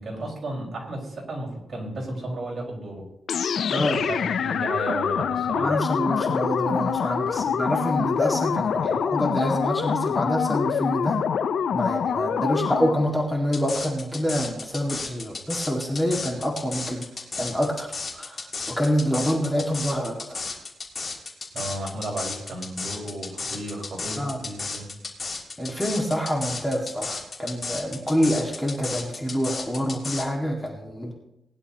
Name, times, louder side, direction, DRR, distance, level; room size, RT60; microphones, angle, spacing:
voice 1, 0.0-3.1 3.9-5.7 21.5-24.9, right 1 dB, 45° right, -3 dB, 5.0 m, -33 dB
sound 1, 3.3-13.1, left 7 dB, 75° left, 0.5 m, -25 dB
voice 2, 5.6-11.2 11.7-17.1 17.4-20.4 24.2-24.4 25.6-31.1, equal, 10° left, -1 dB, 2.0 m, -26 dB
sound 2, 13.5-30.3, left 4 dB, 40° left, 3.1 m, -33 dB
20.0 x 11.0 x 3.0 m, 0.84 s
cardioid pair, 105°, 0 cm